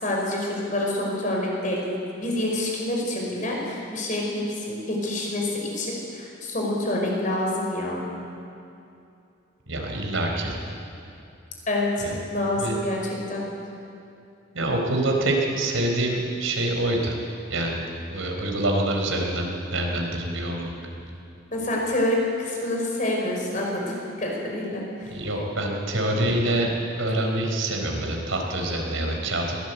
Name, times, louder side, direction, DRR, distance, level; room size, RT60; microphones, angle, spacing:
voice 1, 0.0-8.0 11.7-13.4 21.5-25.1, left 1 dB, 40° left, -1 dB, 5.2 m, -27 dB
voice 2, 9.7-10.6 12.0-12.1 12.6-12.8 14.5-17.2 17.5-17.8 18.1-19.5 19.7-20.7 25.1-29.6, right 1 dB, 90° right, 1 dB, 4.2 m, -26 dB
22.0 x 17.0 x 8.2 m, 2.7 s
head